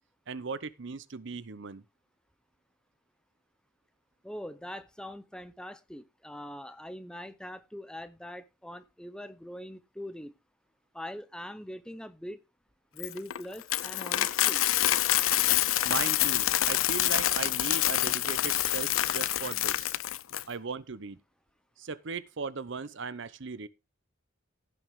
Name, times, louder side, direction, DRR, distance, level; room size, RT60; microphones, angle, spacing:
voice 1, 0.3-1.8 15.8-20.0 20.5-21.2 21.8-23.7, right 5 dB, 65° right, 0.7 m, -38 dB
voice 2, 4.2-10.3 10.9-12.4 12.9-14.6, equal, 5° left, 0.7 m, -42 dB
Coin (dropping), 13.0-20.4, left 14 dB, 85° left, 0.5 m, -27 dB
16.0 x 6.0 x 3.6 m
head